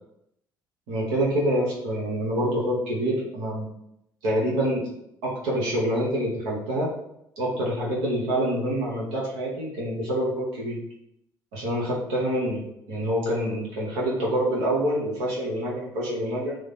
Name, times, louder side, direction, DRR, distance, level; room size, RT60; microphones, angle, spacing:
voice 1, 0.9-3.7 4.2-4.9 5.2-6.9 7.4-10.8 11.5-16.6, equal, 75° right, -4 dB, 1.0 m, -26 dB
3.1 x 2.1 x 4.0 m, 0.79 s
figure-of-eight pair, 50°, 11 cm